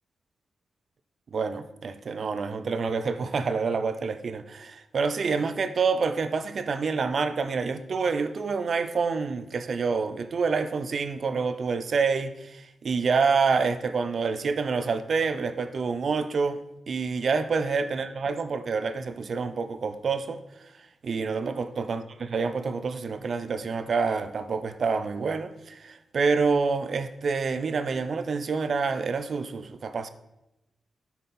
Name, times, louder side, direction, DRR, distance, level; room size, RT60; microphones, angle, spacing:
voice 1, 1.3-16.6 16.9-20.4 21.0-30.1, right 4 dB, 65° right, 0.6 m, -27 dB
9.1 x 5.7 x 4.2 m
cardioid pair, 70°, 0 cm